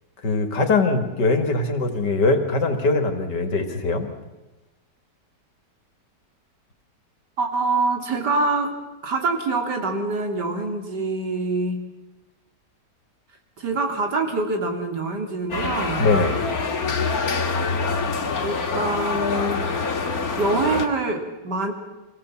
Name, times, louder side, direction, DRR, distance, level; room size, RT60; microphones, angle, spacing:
voice 1, 0.2-4.1 16.0-16.4, left 3 dB, 85° left, 6 dB, 2.8 m, -21 dB
voice 2, 7.4-8.7 9.0-11.8 13.6-16.1 18.4-19.6 20.4-21.7, right 3 dB, 75° right, 4 dB, 3.3 m, -25 dB
sound 1, 15.5-20.9, left 4 dB, 60° left, 2.2 m, -25 dB
25.0 x 17.5 x 7.3 m, 1.1 s
omnidirectional pair, 1.8 m